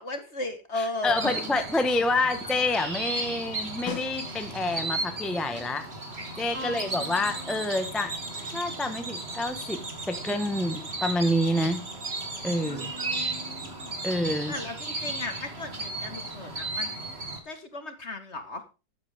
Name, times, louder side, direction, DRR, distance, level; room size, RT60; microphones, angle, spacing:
voice 1, 0.0-1.6 6.5-7.6 12.6-13.9 14.5-17.0 17.5-18.6, left 2 dB, 35° left, 8 dB, 2.0 m, -36 dB
voice 2, 0.8-5.9 6.4-8.1 8.5-9.8 10.1-11.8 12.4-12.9 14.0-14.5, left 1 dB, ahead, 8 dB, 1.1 m, -28 dB
sound 1, 1.0-17.4, right 2 dB, 35° right, 2.7 m, -35 dB
Snare drum, 3.9-4.8 9.2-9.3, left 5 dB, 85° left, 3.3 m, -39 dB
14.0 x 9.7 x 3.6 m, 0.30 s
omnidirectional pair, 2.0 m